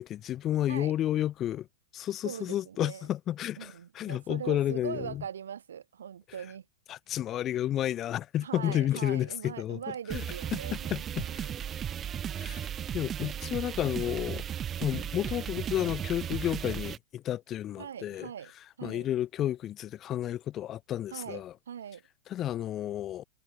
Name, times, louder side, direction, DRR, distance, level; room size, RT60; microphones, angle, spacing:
voice 1, 0.0-1.7 1.9-5.2 6.9-9.8 10.1-10.2 10.5-10.6 10.9-11.5 12.3-12.6 12.9-14.4 14.8-18.3 18.8-21.5 22.3-23.2, left 12 dB, 30° left, 1.2 m, -31 dB
voice 2, 2.2-3.0 3.6-6.7 8.4-11.5 17.8-19.1 21.1-22.0, right 8 dB, 90° right, 3.0 m, -41 dB
sound 1, 10.1-17.0, right 9 dB, 25° right, 2.2 m, -35 dB
hypercardioid pair, 125°, 0 cm